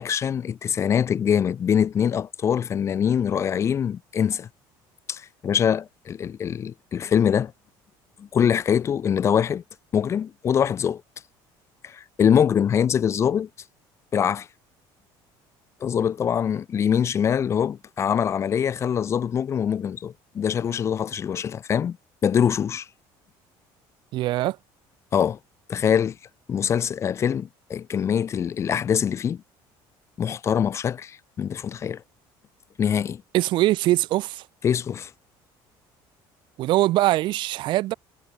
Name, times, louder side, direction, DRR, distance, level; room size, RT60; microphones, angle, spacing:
voice 1, 0.0-4.5 5.1-7.5 8.2-9.6 9.9-11.0 11.8-13.5 14.1-14.5 15.8-22.0 22.2-22.9 25.1-25.4 25.7-26.2 26.5-29.4 30.2-32.0 32.8-33.2 34.6-35.1, left 8 dB, 30° left, 1.3 m, -23 dB
voice 2, 24.1-24.6 33.3-34.5 36.6-37.9, right 16 dB, 55° right, 2.6 m, -22 dB
cardioid pair, 155°, 9 cm